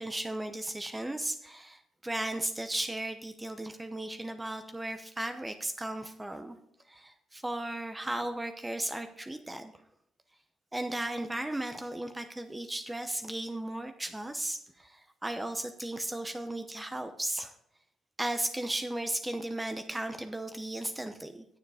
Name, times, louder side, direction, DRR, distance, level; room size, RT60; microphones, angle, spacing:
voice 1, 0.0-6.6 6.9-9.7 10.7-17.5 18.2-21.4, right 1 dB, 10° right, 7 dB, 0.8 m, -35 dB
9.4 x 7.2 x 4.9 m, 0.74 s
cardioid pair, 90°, 0 cm